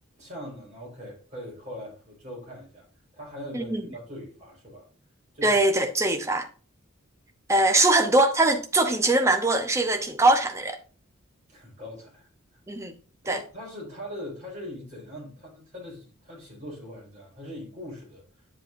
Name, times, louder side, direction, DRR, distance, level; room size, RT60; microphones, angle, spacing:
voice 1, 0.1-2.9 3.1-4.8 5.3-5.6 11.5-12.6 13.2-18.2, equal, 35° right, 4.8 m, -41 dB
voice 2, 5.4-6.5 7.5-10.8 12.7-13.0 13.3-13.4, right 2 dB, 15° right, 0.7 m, -22 dB
8.8 x 7.8 x 2.6 m
head